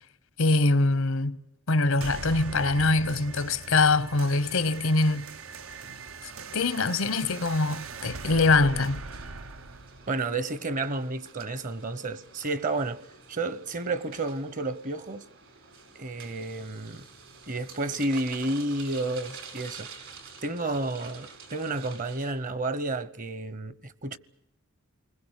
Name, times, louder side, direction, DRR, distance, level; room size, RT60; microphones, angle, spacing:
voice 1, 0.4-1.4 1.7-5.3 6.2-9.0, left 3 dB, 85° left, 1.0 m, -24 dB
sound 1, 2.0-11.0, right 4 dB, 85° right, 1.0 m, -41 dB
sound 2, 4.2-22.3, right 5 dB, 70° right, 4.8 m, -49 dB
voice 2, 10.1-13.0 13.3-15.2 15.9-17.1 17.5-19.9 20.4-24.2, right 2 dB, 40° right, 0.9 m, -31 dB
29.0 x 21.0 x 8.2 m
head